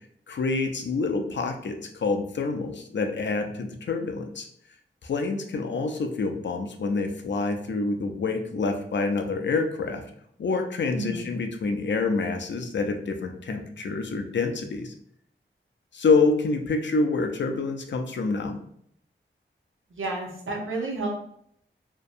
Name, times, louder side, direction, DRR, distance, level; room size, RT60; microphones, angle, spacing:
voice 1, 0.3-4.5 5.0-10.0 10.4-14.9 15.9-18.6, left 3 dB, 60° left, 5 dB, 0.4 m, -27 dB
voice 2, 19.9-21.1, right 2 dB, 80° right, -1 dB, 0.7 m, -31 dB
2.6 x 2.1 x 2.5 m, 0.68 s
cardioid pair, 40°, 21 cm